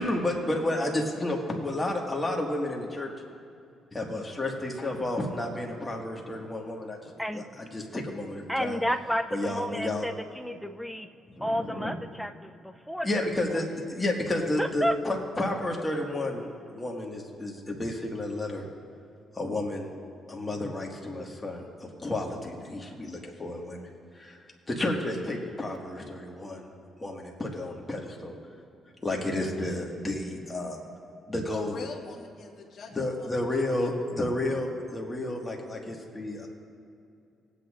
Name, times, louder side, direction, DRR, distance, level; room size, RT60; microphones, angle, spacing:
voice 1, 0.0-3.1 3.9-7.4 7.7-8.8 9.3-10.0 11.3-11.9 13.0-18.6 19.4-19.9 20.3-23.8 24.1-24.4 24.7-26.7 27.0-28.3 29.0-30.8 31.3-31.8 32.9-36.5, left 1 dB, 20° left, 0 dB, 1.8 m, -31 dB
voice 2, 7.1-7.7 8.5-11.1 11.4-13.3 13.5-13.6 14.6-15.0, equal, ahead, 7 dB, 0.6 m, -31 dB
voice 3, 31.5-33.9 34.2-34.3, left 4 dB, 60° left, -1 dB, 1.4 m, -43 dB
19.5 x 8.5 x 2.5 m, 2.5 s
cardioid pair, 90°, 0 cm